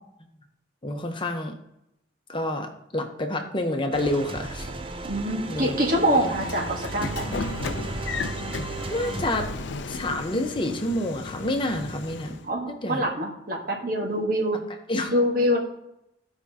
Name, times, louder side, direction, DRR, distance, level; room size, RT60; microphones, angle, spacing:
voice 1, 0.8-1.6 2.3-4.7 5.5-5.8 6.1-6.3 7.0-7.7 8.9-9.5 9.9-12.4 12.8-13.1 14.5-14.6 14.9-15.1, left 1 dB, 30° left, 4 dB, 1.0 m, -28 dB
sound 1, 3.9-12.5, right 2 dB, 30° right, 0.5 m, -36 dB
sound 2, 3.9-4.2 4.4-4.7 5.0-5.3 5.7-5.9 6.3-6.4 6.7-7.4 7.6-8.6, right 2 dB, 90° right, 1.9 m, -47 dB
voice 2, 5.1-7.3 12.4-14.6 15.1-15.6, equal, 50° right, 1 dB, 1.5 m, -25 dB
Train / Sliding door, 5.9-12.5, left 4 dB, 80° left, 0.5 m, -36 dB
15.0 x 5.2 x 2.9 m, 0.82 s
head